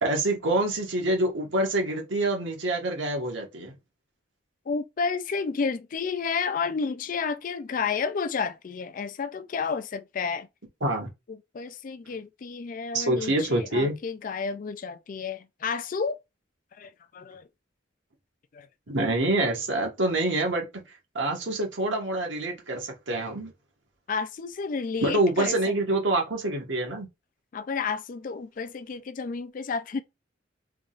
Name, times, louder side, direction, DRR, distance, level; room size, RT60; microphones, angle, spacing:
voice 1, 0.0-3.7 10.8-11.1 12.9-14.0 18.9-20.7 21.1-23.5 25.0-27.1, right 2 dB, 75° right, 1.3 m, -26 dB
voice 2, 4.7-10.5 11.3-16.2 16.8-17.5 18.5-18.7 24.1-25.6 27.5-30.0, left 5 dB, 45° left, 0.3 m, -31 dB
3.7 x 3.5 x 2.4 m
head